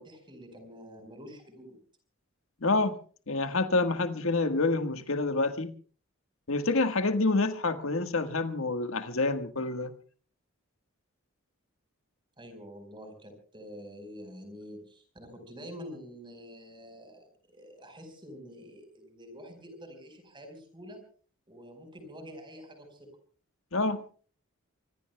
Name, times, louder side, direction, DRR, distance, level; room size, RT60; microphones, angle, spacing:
voice 1, 0.0-1.8 12.4-21.0 21.5-23.1, equal, 20° right, 4.6 m, -47 dB
voice 2, 2.6-3.0 3.3-5.7 6.5-9.9 23.7-24.0, left 3 dB, 70° left, 1.5 m, -27 dB
25.0 x 25.0 x 2.3 m
head